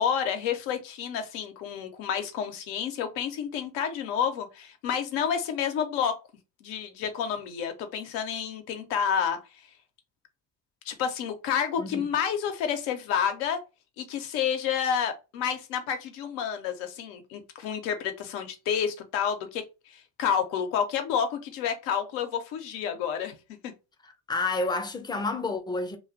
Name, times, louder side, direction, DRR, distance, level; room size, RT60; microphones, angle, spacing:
voice 1, 0.0-6.2 6.6-9.4 10.9-13.6 14.0-23.3 23.6-23.7, left 8 dB, 90° left, 0.6 m, -29 dB
voice 2, 24.0-26.0, left 3 dB, 10° left, 0.3 m, -30 dB
2.3 x 2.2 x 2.5 m
hypercardioid pair, 50°, 50 cm